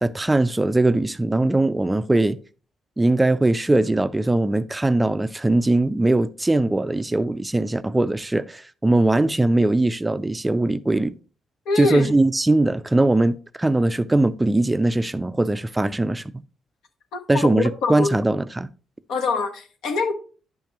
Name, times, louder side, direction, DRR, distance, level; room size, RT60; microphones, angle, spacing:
voice 1, 0.0-2.4 3.0-11.1 11.8-16.4 17.3-18.7, right 2 dB, 10° right, 0.3 m, -20 dB
voice 2, 11.7-12.1 17.1-18.2 19.1-20.1, left 4 dB, 80° left, 1.2 m, -24 dB
10.5 x 5.8 x 3.0 m
cardioid pair, 115°, 0 cm